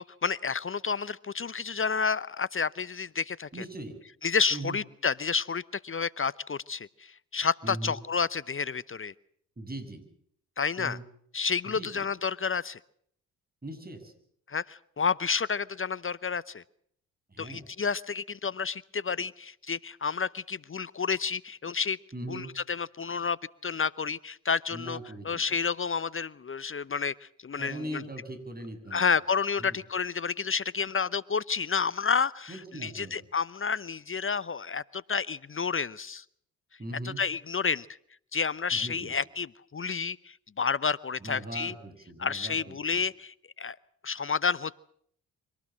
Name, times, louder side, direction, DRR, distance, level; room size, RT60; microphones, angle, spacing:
voice 1, 0.0-3.6 4.2-9.1 10.6-11.0 11.3-12.8 14.5-16.6 17.4-22.0 22.3-23.4 23.6-25.0 25.2-28.0 28.9-36.2 37.0-37.9 38.3-39.5 39.7-41.7 42.2-43.8 44.0-44.8, left 5 dB, 30° left, 20 dB, 0.8 m, -30 dB
voice 2, 3.5-4.0 4.5-4.8 7.6-8.0 9.6-10.0 10.8-11.0 11.6-12.0 13.6-14.1 17.3-17.7 22.1-22.5 24.7-25.4 27.6-29.2 29.6-29.8 32.5-33.2 36.8-37.2 38.7-39.1 41.2-43.0, right 1 dB, 20° right, 7 dB, 7.4 m, -40 dB
25.0 x 19.5 x 7.4 m, 0.66 s
hypercardioid pair, 40°, 41 cm